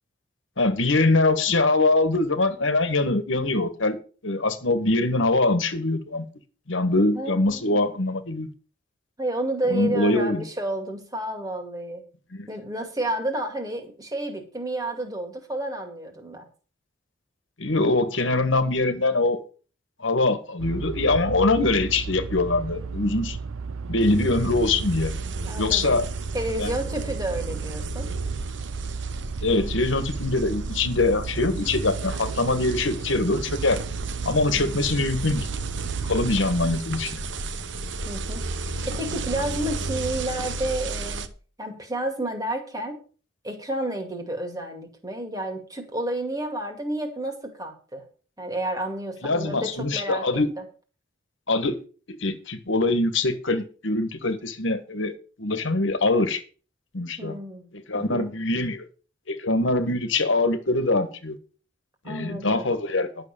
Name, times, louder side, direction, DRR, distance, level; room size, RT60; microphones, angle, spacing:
voice 1, 0.6-4.0 4.2-6.2 6.7-8.5 9.7-10.4 12.3-12.5 17.6-19.4 20.0-23.4 23.9-25.1 25.6-26.1 26.6-26.7 29.4-33.8 34.2-35.5 36.0-37.2 49.2-50.5 51.5-51.8 52.2-55.1 55.4-56.4 56.9-57.3 57.7-58.8 59.3-61.4 62.0-63.1, left 2 dB, 70° left, 1.5 m, -23 dB
voice 2, 7.1-7.9 9.2-12.0 12.5-16.5 21.4-21.8 25.4-26.0 26.3-28.1 34.4-34.8 38.0-38.5 38.8-41.3 41.6-43.0 43.4-48.0 48.4-50.6 57.2-57.7 57.9-58.3 62.0-62.8, right 1 dB, 20° right, 2.3 m, -31 dB
sound 1, 20.6-36.8, right 5 dB, 85° right, 0.5 m, -34 dB
sound 2, 24.0-41.3, right 3 dB, 65° right, 1.0 m, -34 dB
11.5 x 6.5 x 6.8 m
head